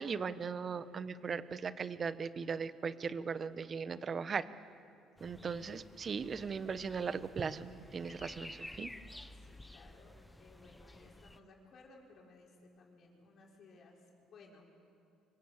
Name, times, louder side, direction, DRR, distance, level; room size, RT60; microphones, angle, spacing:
voice 1, 0.0-4.4 5.2-8.9, right 5 dB, 40° right, 13 dB, 1.2 m, -38 dB
sound 1, 5.2-11.4, left 1 dB, 5° left, 1.0 m, -52 dB
voice 2, 9.3-14.7, left 3 dB, 55° left, -1 dB, 6.1 m, -59 dB
26.0 x 23.5 x 8.3 m, 2.6 s
supercardioid pair, 90°, 0 cm